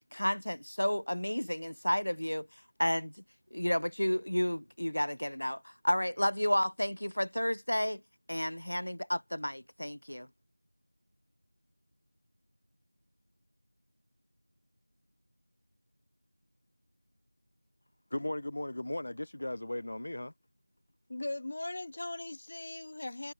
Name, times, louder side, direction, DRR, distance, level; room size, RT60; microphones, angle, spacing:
voice 1, 0.1-2.5 2.8-3.1 3.5-8.0 8.3-10.3, equal, 85° left, 2.1 m, -31 dB
voice 2, 18.1-20.3, left 1 dB, 45° left, 1.5 m, -36 dB
voice 3, 21.1-23.3, left 2 dB, 30° left, 5.8 m, -39 dB
figure-of-eight pair, 175°, 0 cm